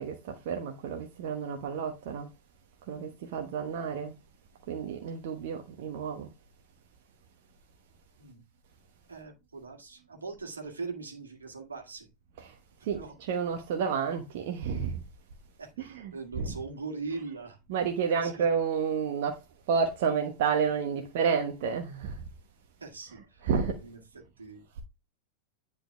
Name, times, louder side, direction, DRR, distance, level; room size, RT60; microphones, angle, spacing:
voice 1, 0.0-2.3 2.9-4.1 4.7-6.3 12.4-12.6 12.8-15.0 15.8-16.5 17.7-22.2 23.4-23.8, right 6 dB, 50° right, 1.1 m, -30 dB
voice 2, 9.1-12.1 12.9-13.2 15.6-17.6 18.1-18.5 22.8-23.5 23.8-24.8, right 4 dB, 75° right, 1.9 m, -41 dB
10.0 x 4.0 x 3.4 m
figure-of-eight pair, 90°, 0 cm